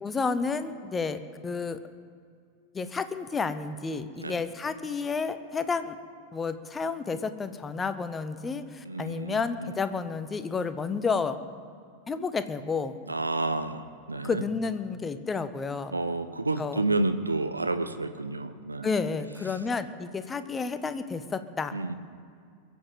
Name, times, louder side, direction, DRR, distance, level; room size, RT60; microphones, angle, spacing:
voice 1, 0.0-1.8 2.7-6.0 6.3-11.4 12.1-12.9 14.2-15.9 16.6-16.8 18.8-21.9, left 4 dB, 15° left, 11 dB, 0.9 m, -31 dB
voice 2, 8.8-9.7 13.1-14.4 15.9-18.9 21.7-21.9, right 2 dB, 80° right, 10 dB, 0.7 m, -30 dB
22.0 x 7.4 x 7.7 m, 2.3 s
figure-of-eight pair, 90°, 0 cm